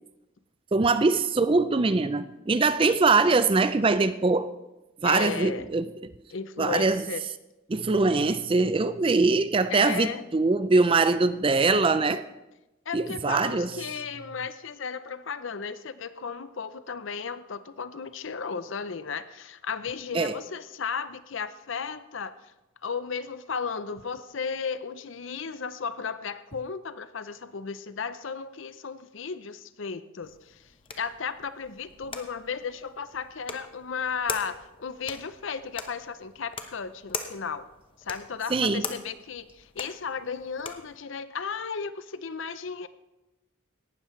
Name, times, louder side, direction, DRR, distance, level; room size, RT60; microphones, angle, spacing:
voice 1, 0.7-4.5 5.0-5.9 6.6-7.0 7.7-12.2 12.9-13.7 20.1-20.3 38.5-38.9, right 3 dB, 25° right, 13 dB, 0.4 m, -22 dB
voice 2, 5.0-5.7 6.3-7.2 9.7-10.2 12.9-22.5 22.8-37.7 38.0-42.9, left 5 dB, 65° left, 13 dB, 0.6 m, -35 dB
sound 1, 30.2-41.0, left 5 dB, 25° left, 0.8 m, -42 dB
17.5 x 12.0 x 3.2 m, 0.99 s
head